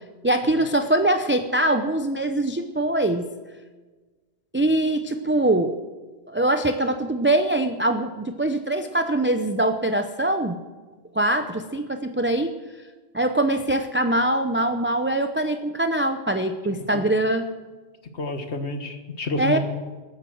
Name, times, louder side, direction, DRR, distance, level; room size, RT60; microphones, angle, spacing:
voice 1, 0.2-3.2 4.5-5.7 6.3-10.6 11.1-12.5 13.1-17.5 19.4-19.6, right 1 dB, 15° right, 7 dB, 0.5 m, -23 dB
voice 2, 18.1-19.6, left 2 dB, 65° left, 7 dB, 1.8 m, -29 dB
19.5 x 9.1 x 7.8 m, 1.3 s
omnidirectional pair, 1.2 m